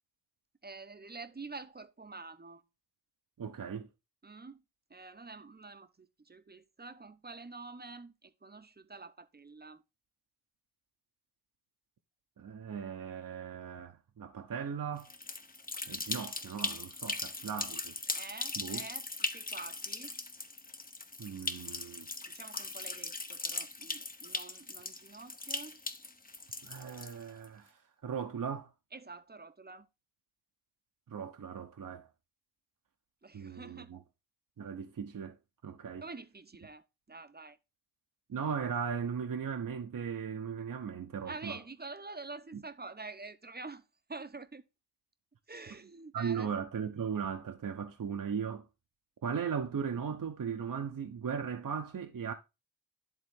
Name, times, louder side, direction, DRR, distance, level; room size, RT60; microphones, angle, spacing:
voice 1, 0.6-2.6 4.2-4.6 4.9-9.8 18.1-20.1 22.3-25.8 28.9-29.9 33.2-33.9 36.0-37.6 41.2-43.8 44.1-44.6 45.5-46.5, right 3 dB, 25° right, 0.9 m, -47 dB
voice 2, 3.4-3.9 12.4-15.1 15.9-17.9 18.6-18.9 21.2-22.1 26.6-27.7 28.0-28.7 31.1-32.1 33.3-34.0 34.6-35.3 35.6-36.0 38.3-41.6 42.5-42.6 46.1-48.6 49.2-52.3, right 7 dB, 50° right, 0.9 m, -37 dB
sound 1, 15.0-27.5, left 3 dB, 20° left, 0.9 m, -39 dB
11.0 x 3.6 x 3.6 m
supercardioid pair, 40°, 40 cm